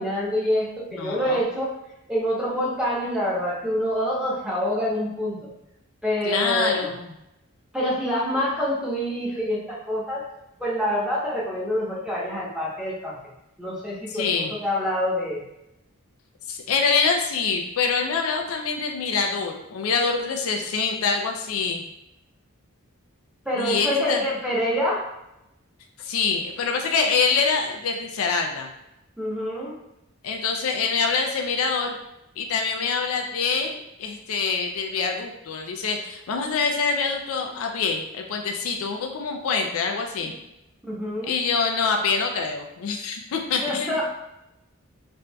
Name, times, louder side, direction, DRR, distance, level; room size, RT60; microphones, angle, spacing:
voice 1, 0.0-1.7 2.1-5.5 6.0-6.9 7.7-10.2 10.6-13.1 13.6-15.4 23.4-25.0 29.2-29.8 40.2-40.3 40.8-41.3 43.6-44.0, equal, 5° right, -6 dB, 0.9 m, -26 dB
voice 2, 1.0-1.4 6.2-7.1 14.1-14.5 16.5-21.8 23.6-24.2 26.0-28.7 30.2-31.9 32.4-40.3 41.2-44.0, left 5 dB, 70° left, 3 dB, 0.4 m, -25 dB
4.3 x 2.5 x 2.2 m, 0.86 s
head